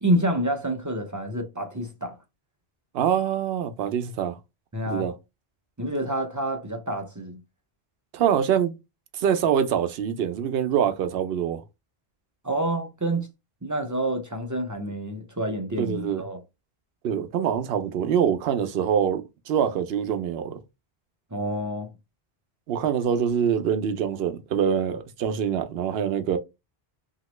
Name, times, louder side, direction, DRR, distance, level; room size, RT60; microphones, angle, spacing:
voice 1, 0.0-2.2 4.7-5.1 5.8-7.4 12.4-13.3 13.6-16.4 21.3-21.9, right 1 dB, 30° right, 0.4 m, -28 dB
voice 2, 2.9-4.4 4.9-5.1 8.1-8.7 9.1-11.6 15.8-16.2 17.0-20.6 22.7-26.4, right 8 dB, 75° right, 0.8 m, -25 dB
2.9 x 2.7 x 3.0 m
omnidirectional pair, 1.1 m